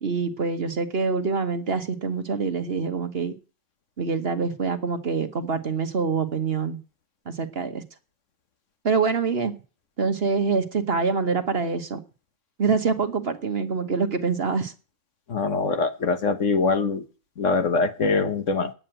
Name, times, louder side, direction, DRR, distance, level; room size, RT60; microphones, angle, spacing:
voice 1, 0.0-3.3 4.0-6.8 7.3-7.8 8.8-9.5 10.0-12.0 12.6-14.7, right 5 dB, 45° right, 1.3 m, -25 dB
voice 2, 15.3-17.1 17.4-18.7, left 4 dB, 60° left, 1.6 m, -23 dB
9.7 x 7.8 x 9.0 m
omnidirectional pair, 1.5 m